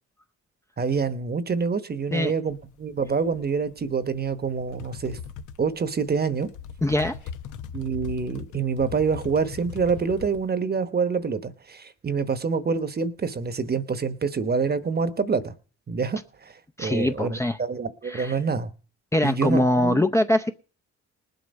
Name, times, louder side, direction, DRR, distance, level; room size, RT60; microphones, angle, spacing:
voice 1, 0.8-5.2 5.6-6.5 7.7-15.5 15.9-18.7 19.2-20.0, right 5 dB, 30° right, 12 dB, 1.0 m, -26 dB
sound 1, 2.5-10.5, left 8 dB, 80° left, 1.0 m, -40 dB
voice 2, 6.8-7.2 16.8-17.6 18.1-18.3 19.1-20.5, left 1 dB, 10° left, 6 dB, 0.6 m, -22 dB
19.0 x 8.0 x 5.3 m, 0.39 s
cardioid pair, 90°, 30 cm